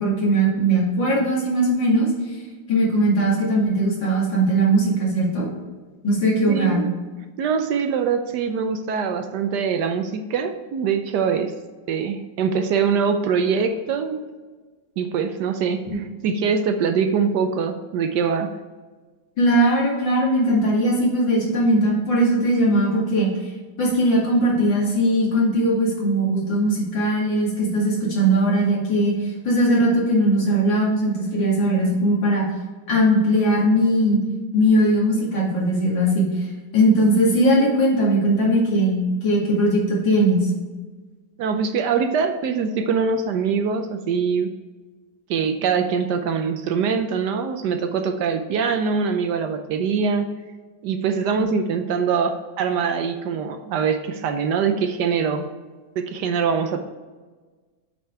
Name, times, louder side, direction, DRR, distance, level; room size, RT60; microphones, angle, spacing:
voice 1, 0.0-2.1 2.7-5.5 6.0-6.8 16.2-16.3 19.4-23.3 23.8-29.1 29.4-32.4 32.9-34.2 34.5-36.3 36.7-40.5, right 1 dB, 70° left, -4 dB, 3.0 m, -19 dB
voice 2, 6.5-6.9 7.4-11.5 11.9-14.2 15.0-18.5 41.4-44.5 45.3-50.3 50.8-55.5 56.0-56.8, right 6 dB, 70° right, 7 dB, 1.2 m, -23 dB
7.7 x 5.2 x 4.6 m, 1.3 s
omnidirectional pair, 2.0 m